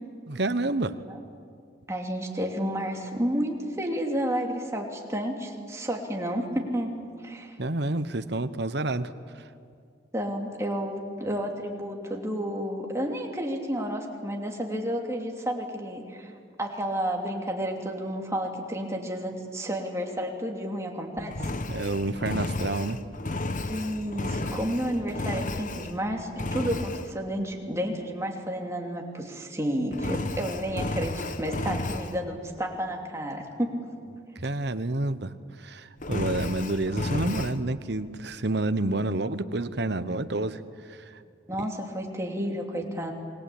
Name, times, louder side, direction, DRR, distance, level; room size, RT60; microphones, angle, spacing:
voice 1, 0.3-0.9 7.6-9.4 21.4-23.0 34.4-35.3 35.6-40.6 40.9-41.1, right 2 dB, 60° right, 11 dB, 1.1 m, -29 dB
voice 2, 1.9-7.6 10.1-16.3 16.6-21.5 23.6-33.8 41.5-43.1, equal, 15° right, 1 dB, 2.9 m, -31 dB
Engine, 21.3-26.0 26.4-27.1 29.9-32.2 36.0-37.6, left 2 dB, 45° left, 1.0 m, -32 dB
27.5 x 22.0 x 8.7 m, 2.3 s
head